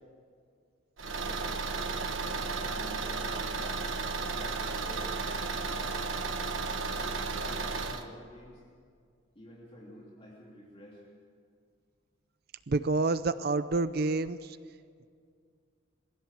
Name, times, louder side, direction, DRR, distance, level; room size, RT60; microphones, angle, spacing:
voice 1, 1.0-1.7 2.2-3.8 4.1-6.0 6.9-8.6 9.3-11.0, equal, 25° left, -4 dB, 3.0 m, -50 dB
Car / Engine, 1.0-8.0, right 4 dB, 75° right, 1.3 m, -33 dB
voice 2, 12.7-14.6, right 3 dB, 50° right, 13 dB, 0.5 m, -28 dB
22.0 x 16.0 x 7.5 m, 2.2 s
head